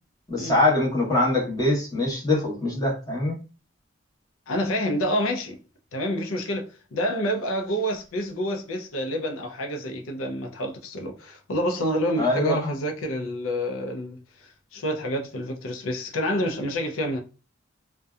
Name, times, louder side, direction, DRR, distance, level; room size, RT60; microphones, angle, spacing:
voice 1, 0.3-3.4 12.2-12.6, left 2 dB, 20° left, 1.0 m, -23 dB
voice 2, 4.5-5.6 5.9-14.2 14.7-17.2, equal, 90° left, 0.5 m, -28 dB
2.6 x 2.2 x 2.3 m
head